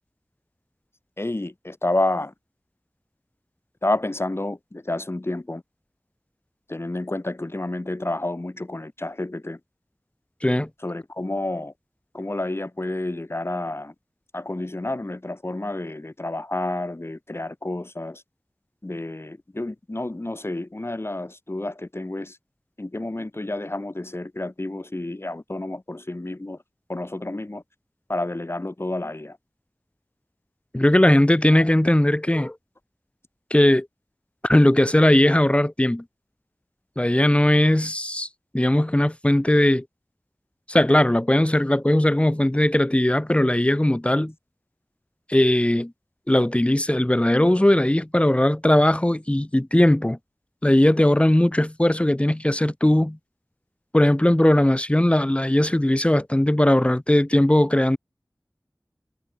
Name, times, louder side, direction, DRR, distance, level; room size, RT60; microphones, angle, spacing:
voice 1, 1.2-2.3 3.8-5.6 6.7-9.6 10.8-11.7 12.1-13.9 14.3-18.2 18.8-22.4 22.8-26.6 26.9-27.6 28.1-29.4, left 2 dB, 40° left, 4.3 m, -30 dB
voice 2, 30.7-32.6 33.5-33.9 34.4-36.0 37.0-38.3 38.5-39.8 40.7-44.3 45.3-45.9 46.3-50.2 50.6-53.2 53.9-58.0, left 1 dB, 20° left, 1.7 m, -19 dB
wide cardioid pair, 45°, 6 cm